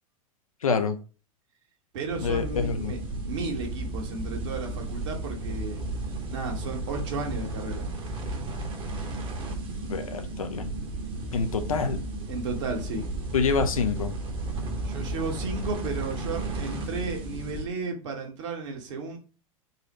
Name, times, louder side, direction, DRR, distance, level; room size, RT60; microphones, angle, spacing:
voice 1, 0.6-1.0 2.2-3.0 9.9-10.7 11.3-12.0 13.3-14.1, left 5 dB, 70° left, 7 dB, 0.7 m, -26 dB
voice 2, 1.9-3.0 3.3-5.8 6.3-7.9 12.3-13.2 14.8-19.2, right 3 dB, 55° right, 2 dB, 1.4 m, -34 dB
sound 1, 2.1-17.7, right 2 dB, 25° right, 1.0 m, -33 dB
4.1 x 2.5 x 4.0 m, 0.36 s
figure-of-eight pair, 90°, 18 cm